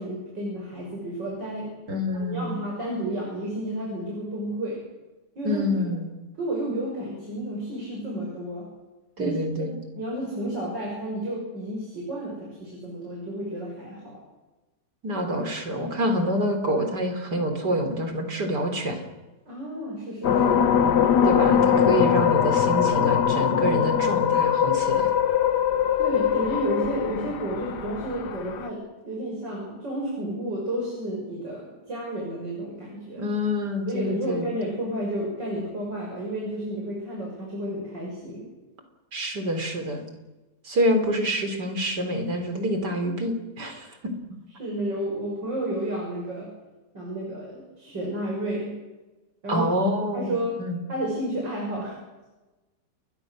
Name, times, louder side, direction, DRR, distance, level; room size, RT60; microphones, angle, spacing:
voice 1, 0.0-1.7 2.1-4.8 5.4-5.7 6.4-8.7 9.2-9.7 10.0-14.2 19.5-20.6 26.0-33.2 33.9-38.5 44.6-46.5 46.9-48.7 49.4-49.7 50.1-50.6 50.9-52.0, right 1 dB, 85° right, -2 dB, 7.0 m, -31 dB
voice 2, 1.9-2.6 5.4-6.1 9.2-9.7 15.0-19.0 21.2-25.1 33.2-34.5 39.1-40.0 40.6-43.9 49.5-50.8, equal, 70° right, 6 dB, 4.4 m, -27 dB
sound 1, 20.2-28.7, left 8 dB, 70° left, 1.7 m, -22 dB
29.0 x 22.0 x 6.5 m, 1.1 s
omnidirectional pair, 1.9 m